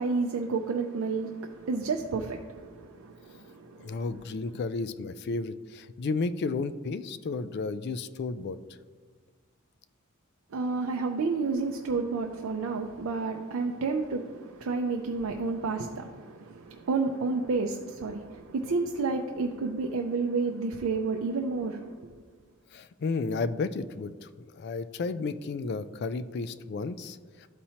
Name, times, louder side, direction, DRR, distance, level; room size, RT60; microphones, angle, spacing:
voice 1, 0.0-4.0 10.5-22.1, right 4 dB, 85° right, 0.5 m, -30 dB
voice 2, 3.8-8.6 22.7-27.5, left 4 dB, 50° left, 0.3 m, -33 dB
12.5 x 4.2 x 2.8 m
head